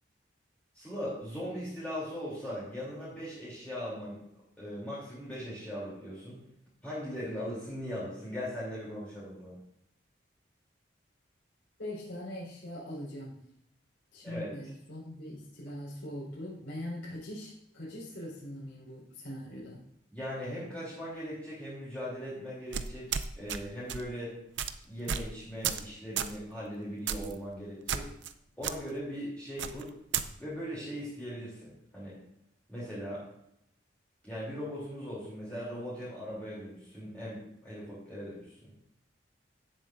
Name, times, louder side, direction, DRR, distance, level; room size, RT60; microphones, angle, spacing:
voice 1, 0.7-4.2 4.6-6.4 6.8-9.6 14.2-14.7 20.1-23.1 23.4-24.4 24.8-28.1 28.6-29.9 30.4-32.2 32.7-33.2 34.2-38.7, equal, 10° left, -9 dB, 3.0 m, -39 dB
voice 2, 11.8-13.4 14.1-19.8, left 1 dB, 70° left, -8 dB, 4.0 m, -41 dB
sound 1, 22.7-23.6 23.9-24.1 24.6-24.7 25.1-25.3 25.6-25.9 26.2-26.4 27.1-27.3 27.9-28.3 28.6-28.7 29.6-30.3, right 8 dB, 75° right, 0.6 m, -33 dB
16.5 x 7.3 x 2.6 m, 0.77 s
head